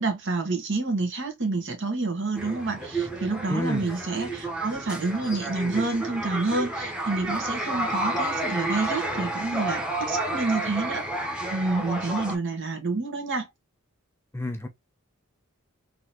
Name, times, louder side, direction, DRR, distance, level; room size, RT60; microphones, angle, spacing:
voice 1, 0.0-11.0 11.5-13.5, right 3 dB, 55° right, 1.5 m, -28 dB
sound 1, 2.3-12.4, right 1 dB, 5° right, 1.0 m, -31 dB
voice 2, 3.5-3.9 14.3-14.7, left 1 dB, 10° left, 0.5 m, -29 dB
3.9 x 3.0 x 2.9 m
head